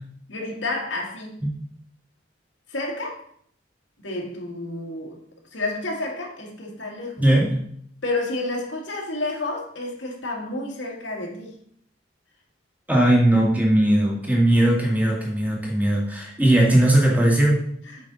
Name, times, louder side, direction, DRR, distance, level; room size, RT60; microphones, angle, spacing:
voice 1, 0.3-1.4 2.7-3.3 4.0-5.2 5.5-7.2 8.0-11.6 17.9-18.1, left 2 dB, 85° left, -1 dB, 2.1 m, -30 dB
voice 2, 7.2-7.5 12.9-17.7, right 1 dB, 10° right, -2 dB, 1.9 m, -19 dB
8.3 x 5.5 x 4.0 m, 0.65 s
head